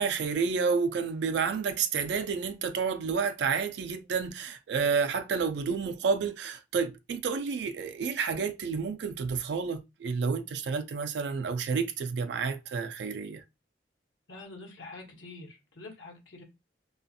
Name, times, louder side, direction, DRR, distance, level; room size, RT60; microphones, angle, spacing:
voice 1, 0.0-13.4, right 5 dB, 65° right, 0.3 m, -30 dB
voice 2, 14.3-16.4, left 3 dB, 90° left, 0.9 m, -46 dB
2.3 x 2.3 x 2.6 m
head